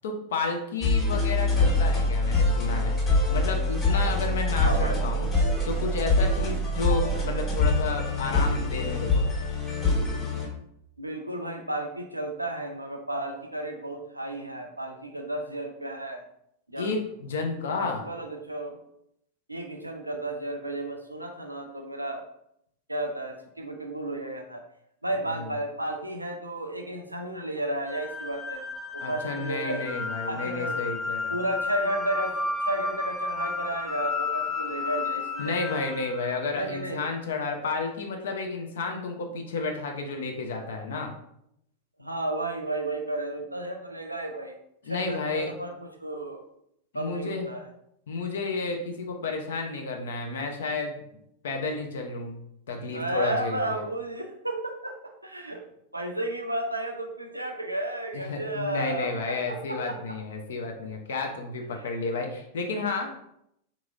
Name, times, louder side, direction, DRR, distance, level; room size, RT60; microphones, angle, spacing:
voice 1, 0.0-3.0 3.3-5.3 5.6-9.3 16.8-18.0 29.0-31.4 35.4-41.1 44.8-45.5 46.9-47.5 48.1-51.0 51.4-52.4 52.7-53.8 58.1-63.2, left 3 dB, 60° left, 3 dB, 0.6 m, -31 dB
sound 1, 0.8-10.5, left 2 dB, 25° left, 1.3 m, -24 dB
voice 2, 4.6-5.0 11.0-16.2 16.7-17.0 17.8-18.8 19.5-22.2 22.9-24.6 25.0-28.6 28.9-29.9 30.2-30.8 31.3-35.8 36.6-37.0 42.0-44.6 44.9-46.4 46.9-47.7 52.9-55.6 55.9-60.0 61.7-61.9, right 1 dB, 85° right, 3 dB, 0.4 m, -33 dB
sound 2, 27.9-37.0, left 4 dB, ahead, 0.5 m, -32 dB
3.9 x 2.9 x 2.4 m, 0.76 s
figure-of-eight pair, 90°, 0 cm